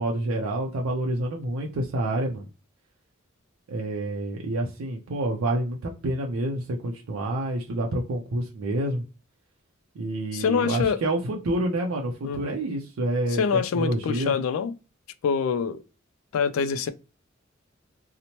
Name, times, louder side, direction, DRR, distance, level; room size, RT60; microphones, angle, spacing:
voice 1, 0.0-2.5 3.7-9.0 10.0-14.3, right 1 dB, 85° right, 0.5 m, -28 dB
voice 2, 10.3-11.0 12.2-12.5 13.3-14.7 15.2-15.8 16.3-16.9, left 6 dB, 80° left, 0.3 m, -25 dB
2.8 x 2.0 x 2.8 m
head